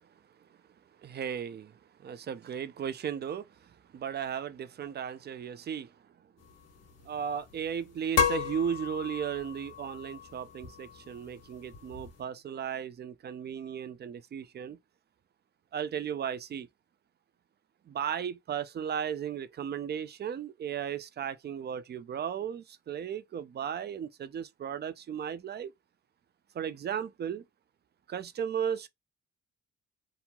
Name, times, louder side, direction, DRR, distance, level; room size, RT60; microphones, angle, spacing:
voice 1, 1.0-1.7 2.0-3.5 3.9-5.9 7.1-14.8 15.7-16.7 17.9-25.7 26.6-27.4 28.1-28.9, right 8 dB, 35° right, 0.4 m, -35 dB
sound 1, 6.4-12.2, left 7 dB, 55° left, 1.2 m, -35 dB
2.9 x 2.6 x 2.2 m
cardioid pair, 90°, 30 cm